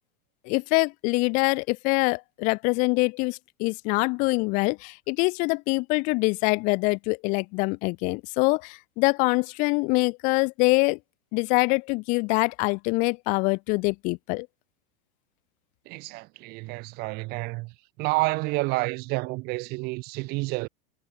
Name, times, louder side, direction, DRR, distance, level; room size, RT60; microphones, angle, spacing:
voice 1, 0.5-11.0 11.3-14.5, left 28 dB, 25° left, 0.7 m, -24 dB
voice 2, 15.9-17.7 18.0-20.7, right 24 dB, 35° right, 3.8 m, -29 dB
supercardioid pair, 170°, 29 cm